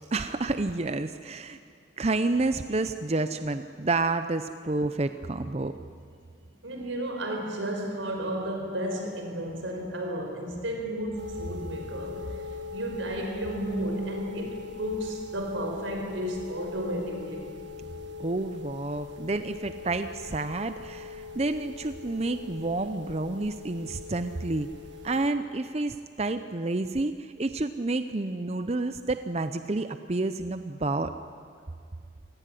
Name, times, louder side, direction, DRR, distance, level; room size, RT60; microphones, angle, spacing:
voice 1, 0.1-1.6 2.0-5.7 18.2-24.7 25.0-31.1, right 2 dB, 35° right, 10 dB, 0.6 m, -29 dB
voice 2, 6.6-12.4 12.7-17.5, right 1 dB, 90° right, 3 dB, 5.1 m, -33 dB
sound 1, 11.2-25.3, left 5 dB, 70° right, 1.6 m, -41 dB
26.0 x 18.0 x 10.0 m, 2.2 s
head